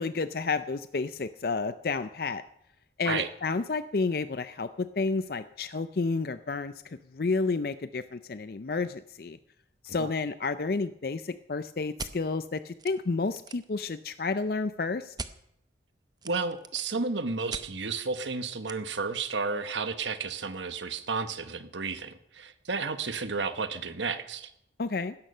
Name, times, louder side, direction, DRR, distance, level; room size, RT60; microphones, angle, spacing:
voice 1, 0.0-2.4 3.0-9.4 9.8-15.1 24.8-25.2, left 4 dB, 55° left, 12 dB, 0.5 m, -31 dB
sound 1, 12.0-12.1 12.8-12.9 13.2-13.7 15.2-15.3 16.2-17.0 17.5-17.7 18.7-18.8, right 4 dB, 20° right, 0.7 m, -39 dB
voice 2, 16.2-24.5, right 4 dB, 85° right, 10 dB, 1.3 m, -32 dB
16.5 x 13.0 x 5.5 m, 0.76 s
head